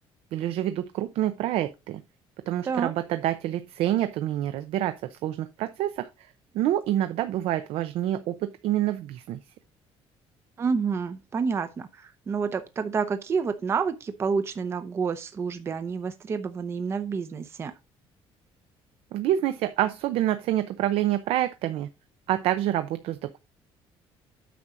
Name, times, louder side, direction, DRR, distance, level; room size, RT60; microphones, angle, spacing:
voice 1, 0.3-2.0 2.5-6.1 6.5-9.4 19.1-21.9 22.3-23.4, right 12 dB, 70° right, 0.7 m, -27 dB
voice 2, 10.6-17.7, right 5 dB, 25° right, 0.7 m, -29 dB
9.3 x 6.2 x 3.9 m
cardioid pair, 180°, 10 cm